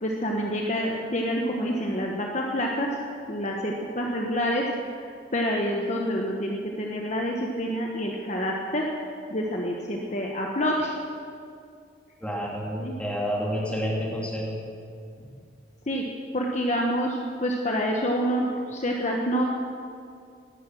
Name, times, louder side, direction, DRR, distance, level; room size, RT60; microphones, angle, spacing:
voice 1, 0.0-4.7 5.3-10.9 12.8-12.9 15.9-16.0 16.3-19.4, equal, 40° left, 0 dB, 1.2 m, -27 dB
voice 2, 12.2-14.6 15.2-15.3, equal, 5° left, -4 dB, 3.0 m, -29 dB
18.0 x 11.5 x 6.2 m, 2.3 s
head